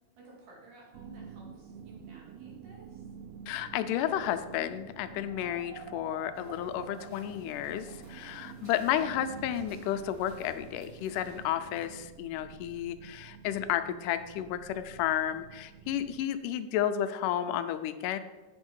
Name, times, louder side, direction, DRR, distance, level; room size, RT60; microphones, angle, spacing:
voice 1, 0.2-3.0, right 2 dB, 70° right, -2 dB, 3.7 m, -54 dB
sound 1, 0.9-16.3, right 7 dB, 85° right, 1.6 m, -48 dB
voice 2, 3.5-18.2, left 11 dB, 85° left, 10 dB, 2.1 m, -32 dB
sound 2, 6.3-11.9, equal, 15° right, 3.5 m, -59 dB
8.7 x 6.3 x 5.3 m, 1.2 s
omnidirectional pair, 3.8 m